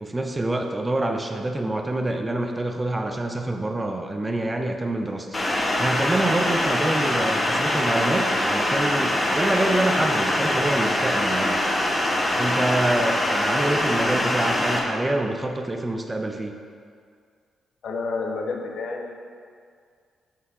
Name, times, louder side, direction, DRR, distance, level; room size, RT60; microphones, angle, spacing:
voice 1, 0.0-5.3 5.8-11.6 12.4-16.5, right 1 dB, 15° right, 4 dB, 0.7 m, -26 dB
sound 1, 5.3-14.8, left 1 dB, 25° left, 1.2 m, -23 dB
voice 2, 17.8-19.1, left 4 dB, 70° left, 2 dB, 0.8 m, -30 dB
6.2 x 5.7 x 4.8 m, 2.1 s
cardioid pair, 90°, 0 cm